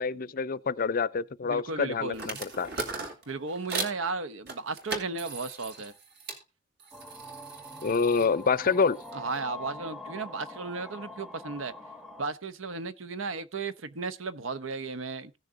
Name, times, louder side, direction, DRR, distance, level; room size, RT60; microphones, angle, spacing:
voice 1, 0.0-2.7 7.8-9.0, left 5 dB, 45° left, 0.5 m, -27 dB
voice 2, 1.4-2.4 3.3-5.9 9.1-11.7 12.2-15.4, right 4 dB, 85° right, 0.9 m, -35 dB
sound 1, 2.1-4.0 4.5-6.4 6.8-9.4, right 3 dB, 60° right, 2.8 m, -39 dB
sound 2, 6.9-12.3, left 1 dB, ahead, 0.8 m, -44 dB
16.0 x 6.6 x 3.7 m
head